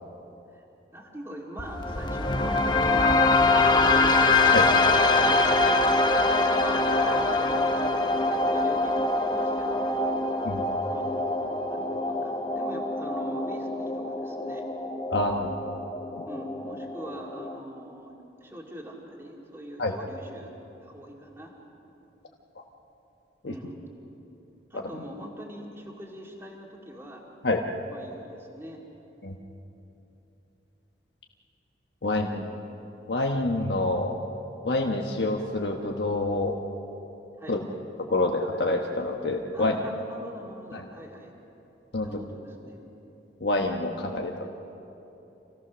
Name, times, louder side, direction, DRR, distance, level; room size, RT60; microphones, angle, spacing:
voice 1, 0.9-4.3 4.9-7.6 8.1-10.1 10.9-14.7 16.2-18.1 18.4-20.5 20.8-21.5 23.4-23.7 24.7-27.2 27.9-28.8 32.2-32.4 37.4-37.6 39.5-41.3 42.0-42.8, right 1 dB, 15° right, -2 dB, 2.4 m, -43 dB
sound 1, 1.6-17.6, left 2 dB, 25° left, 0.9 m, -24 dB
voice 2, 15.1-15.5 16.2-16.3 19.8-19.9 23.4-23.5 24.7-25.0 27.4-27.6 29.2-29.4 32.0-32.4 33.1-34.1 34.6-36.6 37.5-37.7 38.0-39.8 40.7-40.8 41.9-42.1 43.4-44.5, left 2 dB, 75° left, 1 dB, 1.2 m, -27 dB
27.0 x 17.0 x 6.3 m, 3.0 s
head